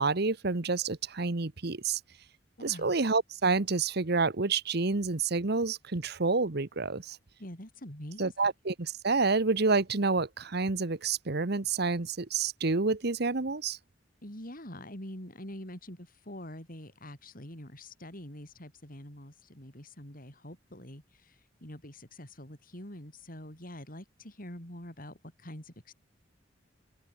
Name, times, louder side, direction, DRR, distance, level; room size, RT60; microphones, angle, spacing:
voice 1, 0.0-2.0 2.6-7.2 8.2-13.8, right 4 dB, 60° right, 1.1 m, -28 dB
voice 2, 2.6-3.0 7.4-8.3 14.2-25.9, left 1 dB, 50° left, 7.9 m, -45 dB
head